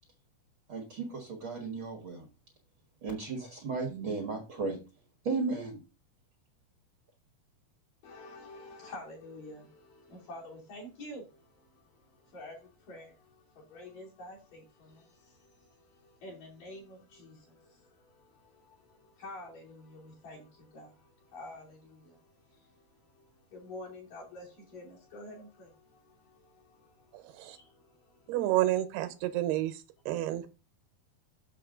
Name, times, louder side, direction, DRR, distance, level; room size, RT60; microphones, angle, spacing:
voice 1, 0.7-2.3 3.0-4.8 5.2-5.8, right 4 dB, 55° right, 1.4 m, -35 dB
voice 2, 8.0-28.3, left 1 dB, 55° left, 4.2 m, -49 dB
voice 3, 27.1-27.6 28.3-30.5, right 14 dB, 80° right, 2.8 m, -30 dB
7.7 x 6.7 x 3.7 m
omnidirectional pair, 4.7 m